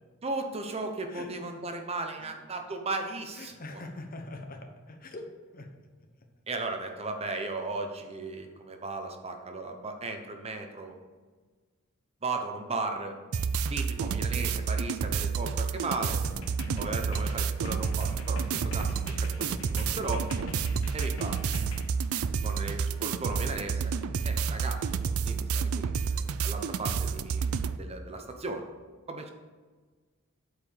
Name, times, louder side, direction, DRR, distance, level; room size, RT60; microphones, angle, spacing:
voice 1, 0.2-3.9 6.5-10.9 12.2-13.2 13.7-16.2 16.8-18.9 19.2-20.5 20.9-21.4 22.4-23.9 24.2-27.4 27.8-28.7 29.1-29.3, right 3 dB, 30° right, 5 dB, 0.8 m, -36 dB
voice 2, 1.1-1.6 2.2-2.3 3.3-5.3 5.5-5.7, left 2 dB, 45° left, 4 dB, 1.1 m, -43 dB
sound 1, 13.3-27.8, right 6 dB, 85° right, 0.4 m, -30 dB
sound 2, 16.2-21.9, left 1 dB, 75° left, 1.3 m, -41 dB
8.4 x 4.9 x 6.6 m, 1.4 s
head